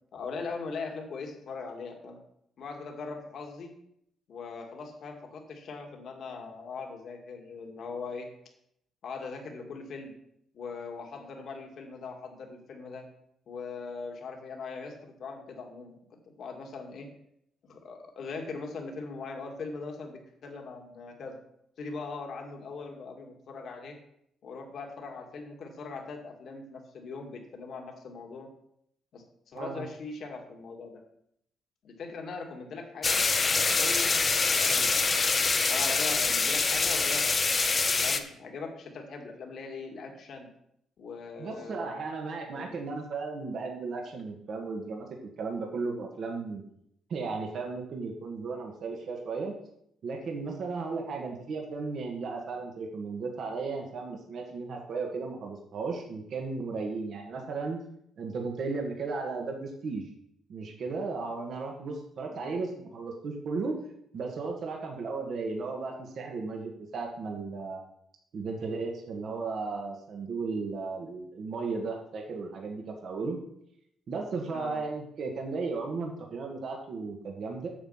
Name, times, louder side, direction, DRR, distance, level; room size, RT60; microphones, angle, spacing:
voice 1, 0.1-2.2 2.6-3.7 4.3-8.3 9.0-10.1 10.5-13.1 13.5-16.0 16.4-17.1 17.7-21.4 21.8-24.0 24.4-28.5 29.1-31.0 31.8-33.2 33.5-35.1 35.7-37.3 38.0-40.5 41.0-42.1 42.5-42.8 62.3-62.6 74.5-74.8, left 4 dB, 65° left, 2 dB, 2.1 m, -40 dB
sound 1, 33.0-38.2, left 4 dB, 35° left, 0.9 m, -25 dB
voice 2, 41.4-46.6 47.1-49.5 50.0-57.8 58.2-60.1 60.5-63.8 64.1-67.8 68.3-73.4 74.1-77.7, right 4 dB, 60° right, 1 dB, 1.7 m, -35 dB
8.6 x 7.1 x 5.7 m, 0.74 s
cardioid pair, 90°, 0 cm